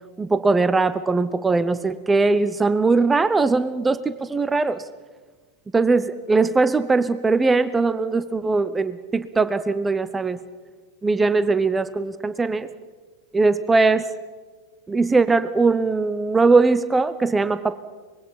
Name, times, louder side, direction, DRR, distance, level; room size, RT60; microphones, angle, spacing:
voice 1, 0.2-4.8 5.7-10.4 11.0-12.7 13.3-14.0 14.9-17.8, right 3 dB, 10° right, 15 dB, 0.8 m, -20 dB
24.5 x 22.5 x 5.8 m, 1.4 s
figure-of-eight pair, 90°, 0 cm